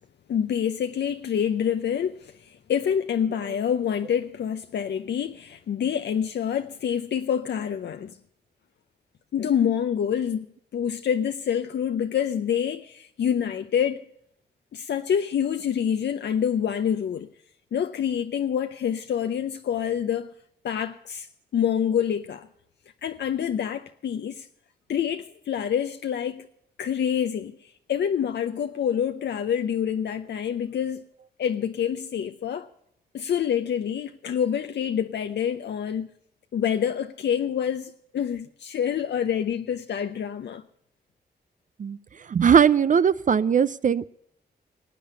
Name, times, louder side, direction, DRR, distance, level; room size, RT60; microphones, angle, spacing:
voice 1, 0.3-8.2 9.3-10.5 10.7-14.0 14.7-17.3 17.7-20.3 20.6-21.3 21.5-22.5 23.0-24.5 24.9-26.5 26.8-31.0 31.4-32.7 33.1-36.1 36.5-40.6, left 8 dB, 75° left, 0.6 m, -27 dB
voice 2, 42.3-44.1, right 7 dB, 45° right, 0.4 m, -19 dB
18.5 x 8.6 x 6.9 m
cardioid pair, 70°, 18 cm